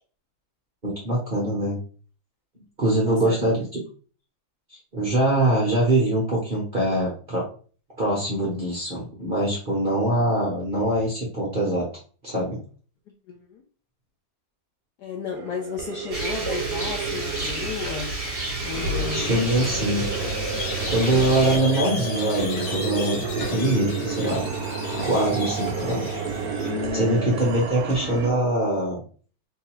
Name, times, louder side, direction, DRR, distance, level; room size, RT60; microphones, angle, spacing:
voice 1, 0.8-1.8 2.8-3.8 4.7-7.4 8.0-11.8 12.2-12.6 18.9-20.1 20.9-24.4 24.9-26.2 26.5-29.0, right 1 dB, 45° right, -5 dB, 0.7 m, -23 dB
voice 2, 3.0-3.6 13.3-13.6 15.0-18.2 18.6-19.4 21.1-21.6 23.6-24.0 26.7-27.4, left 6 dB, 75° left, 2 dB, 0.9 m, -33 dB
sound 1, 15.3-28.3, right 6 dB, 90° right, 0.8 m, -33 dB
Rain, 16.1-21.6, right 1 dB, 30° right, 1.3 m, -30 dB
Squeak, 18.7-27.5, right 2 dB, 55° left, 1.2 m, -31 dB
3.7 x 2.7 x 2.9 m, 0.40 s
omnidirectional pair, 2.2 m